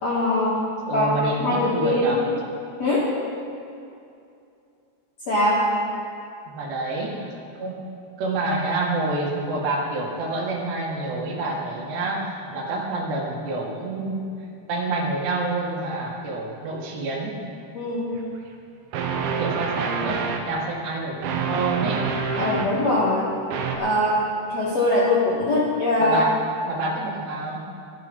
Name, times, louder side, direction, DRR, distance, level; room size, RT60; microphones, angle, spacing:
voice 1, 0.0-0.6 0.9-1.1 1.4-2.2 2.8-3.1 5.3-5.6 17.7-18.1 22.4-23.3 23.8-24.2 24.5-26.2, left 1 dB, 55° left, -7 dB, 2.0 m, -22 dB
voice 2, 0.9-2.2 6.5-7.3 7.6-7.9 8.2-17.4 19.4-22.1 26.0-26.4 26.7-27.7, right 2 dB, 70° right, -2 dB, 3.8 m, -28 dB
sound 1, 18.1-18.2 18.9-20.4 21.2-22.7 23.5-23.8, right 6 dB, 85° right, 3.4 m, -26 dB
13.0 x 12.0 x 5.4 m, 2.6 s
omnidirectional pair, 5.2 m